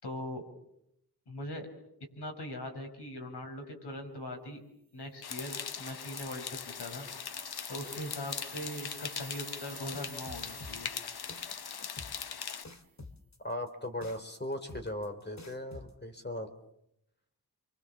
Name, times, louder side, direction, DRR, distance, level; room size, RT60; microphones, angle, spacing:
voice 1, 0.0-0.4 1.3-1.7 2.2-4.6 4.9-7.1 7.3-7.4 7.7-10.9, left 1 dB, 90° left, 4 dB, 6.1 m, -41 dB
sound 1, 5.1-13.1, right 8 dB, 60° right, 2.0 m, -54 dB
sound 2, 5.2-12.6, left 7 dB, 75° left, 1.1 m, -40 dB
sound 3, 9.9-15.9, left 2 dB, 45° left, 2.3 m, -48 dB
voice 2, 13.4-16.5, left 1 dB, 25° left, 6 dB, 3.7 m, -38 dB
29.5 x 24.5 x 7.4 m, 0.79 s
wide cardioid pair, 130°, 39 cm